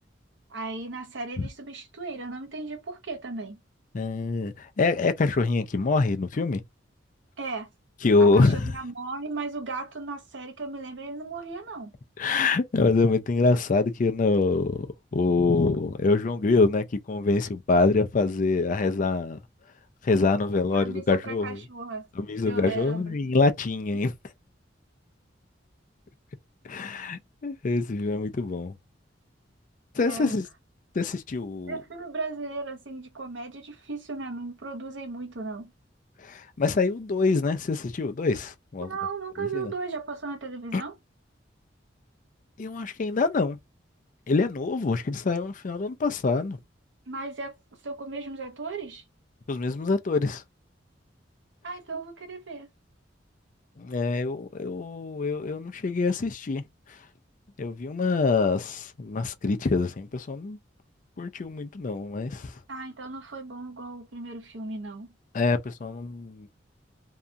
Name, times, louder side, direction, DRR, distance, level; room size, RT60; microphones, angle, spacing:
voice 1, 0.5-3.6 7.4-7.7 8.2-11.9 20.7-22.1 22.4-23.2 30.0-30.4 31.7-35.7 38.8-40.9 47.1-49.0 51.6-52.7 62.7-65.1, right 3 dB, 70° right, 0.8 m, -36 dB
voice 2, 3.9-6.6 8.0-8.7 12.2-14.9 15.1-19.4 20.0-21.6 22.2-24.1 26.6-28.7 29.9-30.4 30.9-31.8 36.2-38.9 39.5-39.7 40.7-40.8 42.6-43.6 44.3-46.6 49.5-50.4 53.8-56.6 57.6-60.6 61.2-62.5 65.3-66.5, left 3 dB, 45° left, 0.4 m, -25 dB
2.8 x 2.3 x 2.5 m
head